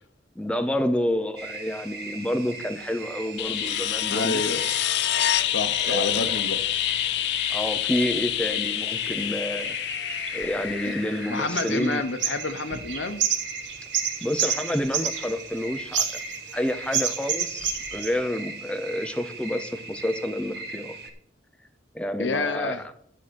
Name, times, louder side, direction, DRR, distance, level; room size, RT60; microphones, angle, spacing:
voice 1, 0.4-4.4 5.8-6.3 7.5-9.8 10.3-12.0 14.2-16.2 16.5-21.0 21.9-22.9, left 1 dB, 5° left, 0.5 m, -29 dB
sound 1, 1.4-21.1, right 3 dB, 60° right, 1.6 m, -39 dB
sound 2, 3.4-12.1 14.4-14.5, left 13 dB, 65° left, 0.4 m, -27 dB
voice 2, 4.1-4.7 5.5-6.6 10.8-10.9 11.3-13.2 22.2-22.8, left 3 dB, 80° left, 1.0 m, -28 dB
sound 3, 8.8-9.0 9.7-11.2 11.5-11.9 12.2-15.6 15.9-16.6 16.9-18.1, right 8 dB, 80° right, 1.7 m, -28 dB
10.5 x 5.7 x 6.4 m
head